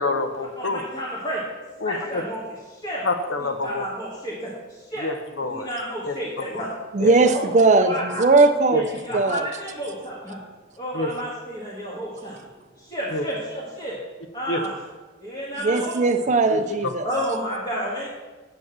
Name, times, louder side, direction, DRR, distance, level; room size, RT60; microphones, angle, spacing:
voice 1, 0.0-0.8 1.8-2.2 3.0-3.8 5.0-5.7 6.0-6.1 7.0-7.1 8.7-8.8 10.9-11.1 13.1-13.2 14.5-14.6 16.5-16.6, left 2 dB, 65° left, 7 dB, 0.8 m, -26 dB
voice 2, 0.6-1.5 1.8-3.1 3.4-5.1 5.4-6.7 7.0-8.3 8.7-10.4 10.8-12.4 12.8-14.0 14.3-14.9 15.2-16.0 17.0-18.1, equal, 25° left, -6 dB, 1.6 m, -31 dB
voice 3, 6.9-8.8 9.1-9.4 15.6-17.0, right 3 dB, 35° right, 7 dB, 0.4 m, -18 dB
7.7 x 5.2 x 7.4 m, 1.3 s
head